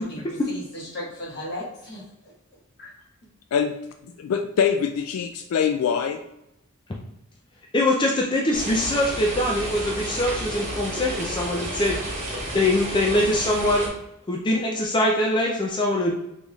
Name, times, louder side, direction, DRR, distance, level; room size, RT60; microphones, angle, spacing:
voice 1, 0.1-2.3 2.8-2.9, left 1 dB, 50° left, -4 dB, 1.4 m, -36 dB
voice 2, 4.2-6.2, left 7 dB, 90° left, 6 dB, 0.3 m, -23 dB
voice 3, 7.7-12.0 12.5-13.9 14.3-16.2, left 1 dB, 20° left, -1 dB, 0.4 m, -23 dB
sound 1, 8.5-13.9, right 1 dB, 35° right, 1.2 m, -31 dB
4.0 x 3.3 x 2.3 m, 0.85 s
head